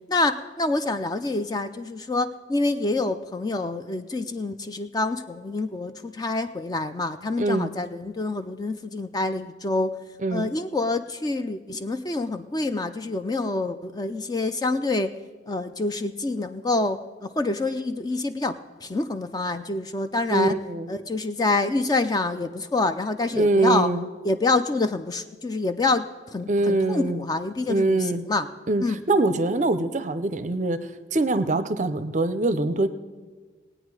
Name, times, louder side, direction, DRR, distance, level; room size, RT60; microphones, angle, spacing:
voice 1, 0.1-10.0 10.3-15.1 15.5-18.6 18.8-20.5 20.9-23.9 24.2-28.5 28.8-29.0, left 2 dB, 20° left, 9 dB, 0.3 m, -27 dB
voice 2, 7.4-7.7 10.2-10.5 20.3-20.9 23.4-24.0 26.5-27.2 27.7-28.2 28.7-30.8 31.1-32.9, right 2 dB, 40° right, 12 dB, 0.5 m, -23 dB
19.0 x 8.9 x 4.7 m, 1.4 s
head